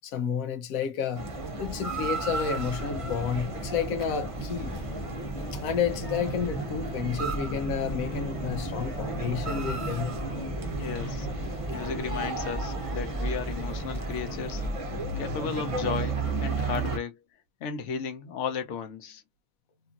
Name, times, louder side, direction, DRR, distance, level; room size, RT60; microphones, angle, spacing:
voice 1, 0.0-1.3 1.6-4.7 5.5-10.2, left 7 dB, 90° left, 1.0 m, -31 dB
sound 1, 1.1-17.0, right 3 dB, 40° right, 0.5 m, -34 dB
sound 2, 1.2-14.7, equal, 35° left, 0.9 m, -36 dB
voice 2, 10.7-11.3 11.7-14.6 15.2-17.2 17.6-19.2, left 6 dB, 65° left, 1.0 m, -34 dB
2.9 x 2.6 x 2.4 m
omnidirectional pair, 1.4 m